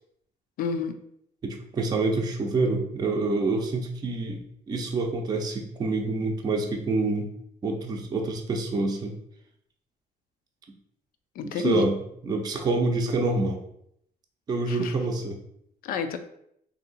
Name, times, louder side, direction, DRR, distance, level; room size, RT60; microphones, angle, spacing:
voice 1, 0.6-1.0 11.4-11.9 14.7-14.9 15.8-16.2, left 6 dB, 75° left, 8 dB, 0.5 m, -29 dB
voice 2, 1.4-4.4 4.7-7.3 7.6-9.1 11.4-12.0 12.2-13.6 14.5-15.4, right 3 dB, 25° right, 2 dB, 0.5 m, -27 dB
3.7 x 2.8 x 4.0 m, 0.73 s
cardioid pair, 170°, 15 cm